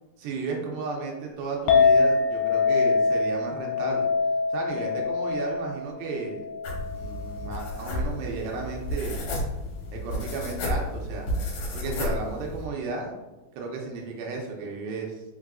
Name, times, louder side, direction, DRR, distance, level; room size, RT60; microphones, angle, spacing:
voice 1, 0.2-4.1 4.5-6.4 6.9-9.2 9.9-11.3 11.7-13.1 13.6-15.2, right 4 dB, 80° right, 0 dB, 2.5 m, -34 dB
Chink clink, 1.7-8.0, left 4 dB, 80° left, 2.1 m, -24 dB
sound 1, 6.6-12.7, left 1 dB, 65° left, 2.0 m, -32 dB
5.5 x 3.9 x 2.5 m, 1.1 s
omnidirectional pair, 4.3 m